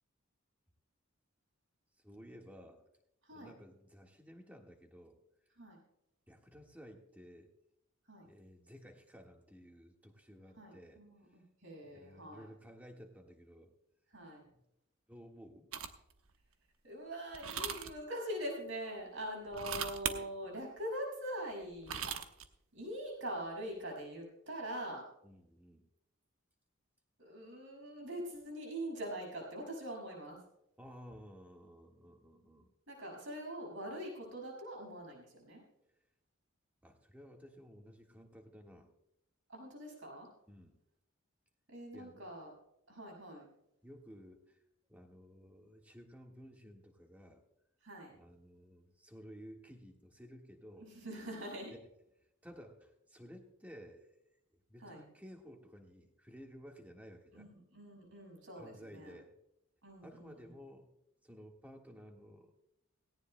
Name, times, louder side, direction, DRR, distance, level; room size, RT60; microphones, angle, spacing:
voice 1, 2.0-2.8 3.3-5.2 6.3-7.5 8.2-11.0 11.3-11.4 11.8-13.7 15.1-15.7 19.5-19.9 25.2-25.8 30.8-32.7 36.8-38.9 40.5-40.8 41.9-42.2 43.8-44.6 44.9-47.4 48.1-50.9 52.4-54.1 54.7-57.5 58.6-59.3 60.0-60.9 61.2-62.5, equal, 5° right, 2 dB, 1.6 m, -55 dB
voice 2, 10.5-12.5 14.1-14.4 16.8-22.1 22.7-25.1 27.2-30.4 32.9-35.6 39.5-40.3 41.7-42.5 42.9-43.5 47.8-48.2 50.8-51.7 54.8-55.0 57.3-59.1 59.8-60.5, equal, 60° right, 0 dB, 6.1 m, -43 dB
sound 1, 15.7-16.1 17.3-17.9 19.5-20.2 21.6-22.5, right 7 dB, 80° right, 1.1 m, -38 dB
18.0 x 17.5 x 2.2 m, 0.83 s
head